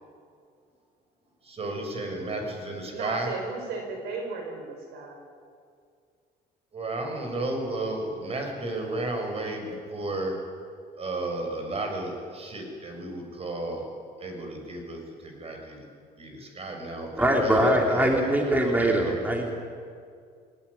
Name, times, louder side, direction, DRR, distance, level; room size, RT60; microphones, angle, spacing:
voice 1, 1.4-3.3 6.7-10.3 11.0-13.9 14.2-15.8 16.2-19.3, right 2 dB, 35° right, 3 dB, 6.7 m, -33 dB
voice 2, 2.9-5.2, right 4 dB, 80° right, 4 dB, 5.7 m, -35 dB
voice 3, 17.2-19.5, right 1 dB, 10° right, 1 dB, 3.2 m, -22 dB
21.5 x 20.0 x 9.9 m, 2.2 s
cardioid pair, 110°, 17 cm